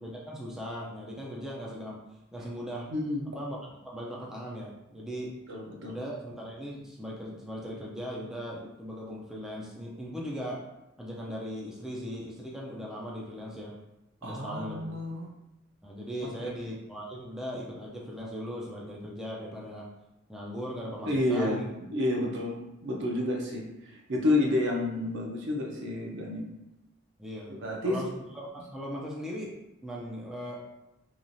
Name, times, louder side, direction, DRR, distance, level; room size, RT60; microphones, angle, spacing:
voice 1, 0.0-2.0 2.3-2.9 3.3-3.6 3.8-5.3 5.9-10.6 11.0-13.8 14.2-14.9 15.8-19.9 20.3-21.6 27.2-28.1 28.3-29.5 29.8-30.6, equal, 5° right, -5 dB, 0.4 m, -38 dB
voice 2, 2.9-3.3 5.5-6.0 14.2-15.3 16.4-16.5 21.1-22.6 22.8-26.4 27.6-28.0, left 2 dB, 60° right, -1 dB, 0.6 m, -30 dB
3.0 x 2.4 x 2.6 m, 0.91 s
head